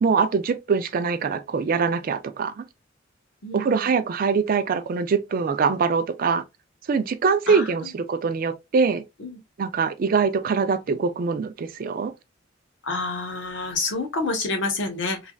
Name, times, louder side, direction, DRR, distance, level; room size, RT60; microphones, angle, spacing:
voice 1, 0.0-2.6 3.5-6.4 6.9-9.0 9.6-12.1, right 5 dB, 45° right, 0.3 m, -23 dB
voice 2, 3.4-3.9 7.5-7.7 9.2-9.4 12.8-15.3, left 3 dB, 65° left, 0.9 m, -28 dB
3.2 x 2.4 x 2.2 m
head